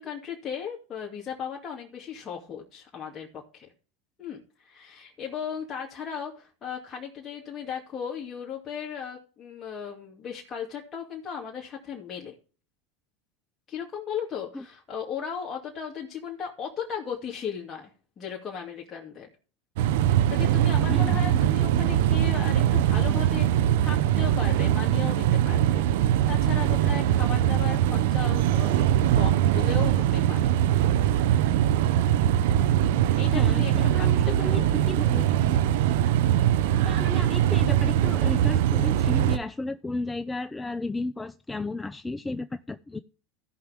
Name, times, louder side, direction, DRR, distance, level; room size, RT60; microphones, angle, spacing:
voice 1, 0.0-3.7 4.2-12.3 13.7-17.9 18.2-19.3 20.0-30.5 33.2-34.6, left 7 dB, 30° left, 2.5 m, -36 dB
sound 1, 19.8-39.4, right 11 dB, 75° right, 0.8 m, -22 dB
voice 2, 20.9-21.4 33.3-34.6 34.9-35.6 36.8-43.0, left 2 dB, 10° left, 0.5 m, -34 dB
16.0 x 6.0 x 3.6 m
supercardioid pair, 105°, 0 cm